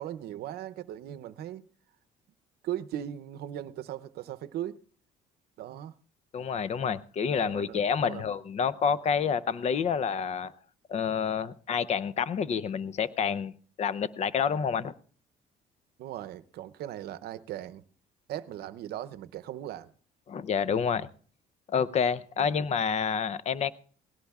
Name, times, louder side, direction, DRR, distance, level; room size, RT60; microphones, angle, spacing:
voice 1, 0.0-1.7 2.6-4.8 5.6-6.0 7.4-8.3 16.0-17.8 18.3-19.9 22.4-22.6, right 12 dB, 70° right, 0.7 m, -38 dB
voice 2, 6.3-10.5 10.9-13.5 13.8-14.9 20.3-21.1 21.7-23.7, left 7 dB, 40° left, 0.6 m, -28 dB
19.5 x 17.0 x 2.4 m
cardioid pair, 110°, 17 cm